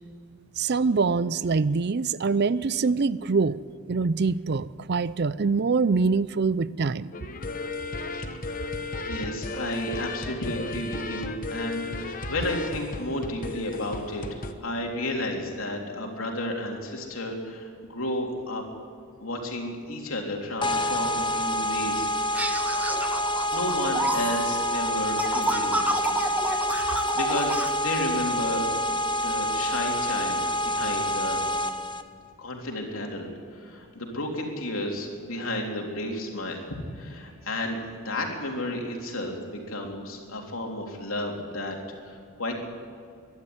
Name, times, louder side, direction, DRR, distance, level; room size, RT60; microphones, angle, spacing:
voice 1, 0.6-3.6 3.9-7.1, right 4 dB, 50° right, 18 dB, 0.5 m, -24 dB
sound 1, 7.1-14.5, left 3 dB, 40° left, 1.1 m, -34 dB
voice 2, 8.5-18.6 19.2-22.4 23.5-26.3 26.8-28.7 29.2-31.4 32.4-36.6 36.9-37.8 38.0-41.8 42.0-42.6, left 1 dB, 65° left, 1 dB, 3.6 m, -32 dB
sound 2, 20.6-32.0, equal, 20° left, 0.8 m, -27 dB
sound 3, 22.3-27.7, right 1 dB, 5° right, 0.9 m, -30 dB
23.5 x 12.0 x 9.6 m, 2.3 s
head